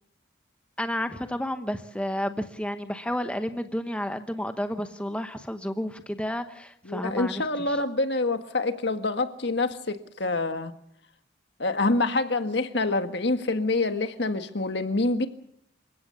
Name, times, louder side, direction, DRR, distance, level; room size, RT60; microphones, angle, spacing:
voice 1, 0.8-7.8, equal, 5° left, 7 dB, 1.0 m, -31 dB
voice 2, 6.9-10.7 11.6-15.3, left 2 dB, 60° left, 8 dB, 1.7 m, -26 dB
28.0 x 16.5 x 7.0 m, 0.73 s
head